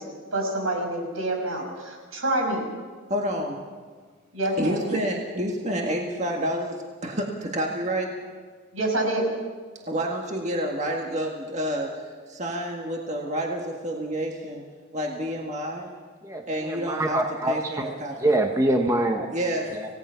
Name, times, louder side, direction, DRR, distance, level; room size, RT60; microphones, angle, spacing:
voice 1, 0.0-2.7 4.3-4.8 8.7-9.3, right 1 dB, 80° right, 2 dB, 5.9 m, -27 dB
voice 2, 3.1-3.6 4.6-8.1 9.9-14.6 14.9-15.9 16.5-17.2 17.5-18.2 19.3-19.8, right 1 dB, 35° right, 0 dB, 1.8 m, -29 dB
voice 3, 16.2-19.3 19.7-19.9, right 1 dB, 15° right, 3 dB, 1.0 m, -25 dB
27.0 x 17.5 x 5.8 m, 1.5 s
head